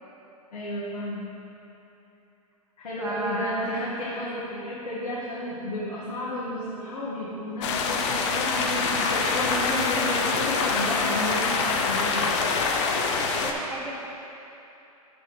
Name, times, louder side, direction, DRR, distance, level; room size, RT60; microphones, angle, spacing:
voice 1, 0.5-1.3 2.8-12.3, left 1 dB, 90° left, -7 dB, 1.3 m, -32 dB
voice 2, 3.0-3.9 13.0-14.1, right 2 dB, 10° right, -3 dB, 0.4 m, -34 dB
sound 1, 7.6-13.5, left 4 dB, 45° left, 0.7 m, -25 dB
7.1 x 6.1 x 3.8 m, 2.9 s
hypercardioid pair, 125°, 20 cm